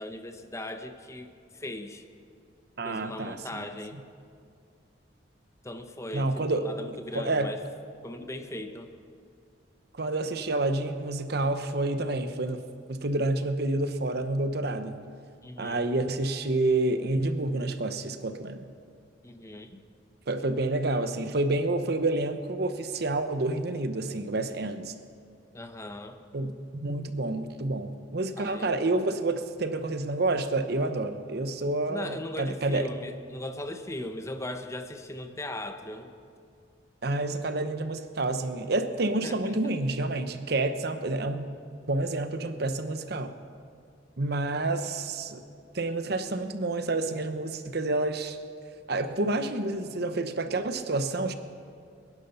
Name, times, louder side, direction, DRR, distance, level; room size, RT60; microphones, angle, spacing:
voice 1, 0.0-2.0 2.8-4.0 5.6-7.6 8.0-8.9 15.4-15.9 19.2-19.8 25.5-26.2 28.4-28.7 31.9-36.1 39.2-39.6, left 1 dB, 15° left, 7 dB, 0.7 m, -39 dB
voice 2, 2.8-3.7 6.1-6.7 7.1-7.5 9.9-12.6 12.9-14.9 15.6-18.6 20.3-24.9 26.3-32.9 37.0-41.4 41.9-43.3 44.2-45.4 45.7-48.4 48.9-51.3, right 2 dB, 60° right, 9 dB, 0.9 m, -29 dB
21.0 x 11.0 x 5.7 m, 2.4 s
head